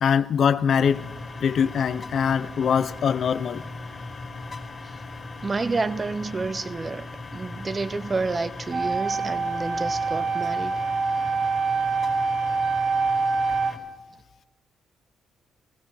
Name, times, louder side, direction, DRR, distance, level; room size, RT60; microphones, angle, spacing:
voice 1, 0.0-1.1 1.4-3.6, left 7 dB, 60° left, 0.4 m, -22 dB
sound 1, 0.8-13.8, left 3 dB, 35° left, 2.4 m, -38 dB
voice 2, 5.4-7.1 7.3-10.8, right 3 dB, 30° right, 0.5 m, -29 dB
sound 2, 8.7-13.7, right 4 dB, 80° right, 2.8 m, -25 dB
16.0 x 15.5 x 3.3 m
cardioid pair, 90°, 0 cm